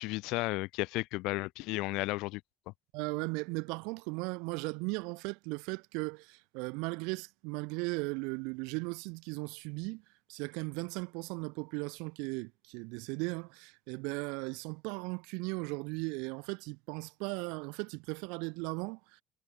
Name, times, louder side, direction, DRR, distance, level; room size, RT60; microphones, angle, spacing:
voice 1, 0.0-2.4, left 22 dB, 70° left, 6.4 m, -33 dB
voice 2, 2.9-10.0 10.3-19.2, right 31 dB, 80° right, 3.1 m, -37 dB
cardioid pair, 140°, 0 cm